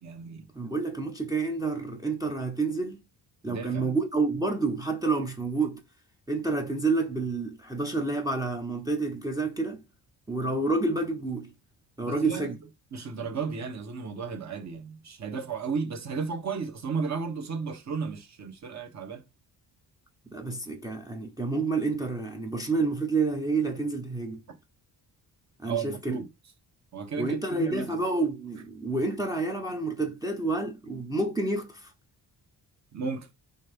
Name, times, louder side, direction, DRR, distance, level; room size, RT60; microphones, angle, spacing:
voice 1, 0.0-0.5 3.5-3.9 12.0-12.5 12.9-19.2 25.6-26.3 26.9-27.9 30.9-31.0 32.9-33.3, right 5 dB, 40° right, 1.4 m, -34 dB
voice 2, 0.5-3.0 3.4-5.8 6.3-9.8 10.3-11.5 12.0-12.6 20.3-24.4 25.6-26.2 27.2-31.9, right 3 dB, 10° right, 0.7 m, -29 dB
5.4 x 3.4 x 5.3 m
wide cardioid pair, 170°, 40 cm